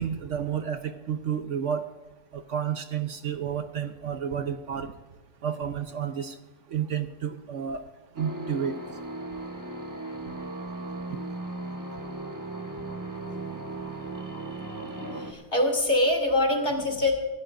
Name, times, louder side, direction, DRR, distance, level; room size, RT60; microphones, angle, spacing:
voice 1, 0.0-1.9 2.3-4.9 5.4-6.4 6.7-7.8 8.2-8.8, right 8 dB, 60° right, 8 dB, 1.0 m, -31 dB
sound 1, 8.2-15.3, right 2 dB, 15° right, 1.1 m, -37 dB
voice 2, 15.1-17.1, left 1 dB, 40° left, 0 dB, 2.8 m, -24 dB
24.5 x 13.5 x 2.6 m, 1.3 s
omnidirectional pair, 1.5 m